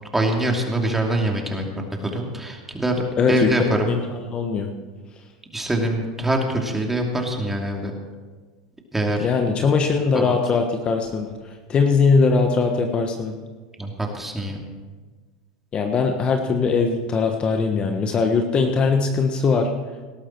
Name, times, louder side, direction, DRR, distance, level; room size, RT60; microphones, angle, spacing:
voice 1, 0.1-3.0 3.3-3.9 5.5-7.9 8.9-9.3 10.1-10.4 13.8-14.6, right 1 dB, 10° right, 1 dB, 2.8 m, -24 dB
voice 2, 3.2-3.5 3.9-4.0 4.3-4.7 9.2-11.4 11.7-13.3 15.7-19.7, left 4 dB, 35° left, 4 dB, 1.3 m, -20 dB
19.0 x 12.0 x 4.6 m, 1.4 s
hypercardioid pair, 105°, 3 cm